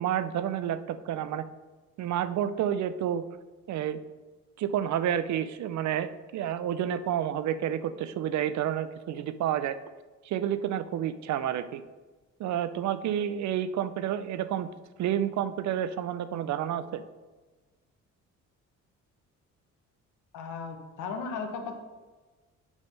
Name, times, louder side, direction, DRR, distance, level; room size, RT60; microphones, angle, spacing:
voice 1, 0.0-1.5 2.0-3.2 3.7-4.0 4.6-9.8 10.2-11.8 12.4-14.7 15.0-17.0, right 10 dB, 70° right, 13 dB, 0.5 m, -30 dB
voice 2, 20.3-21.8, left 5 dB, 85° left, 4 dB, 1.1 m, -36 dB
8.0 x 3.6 x 5.4 m, 1.3 s
cardioid pair, 90°, 30 cm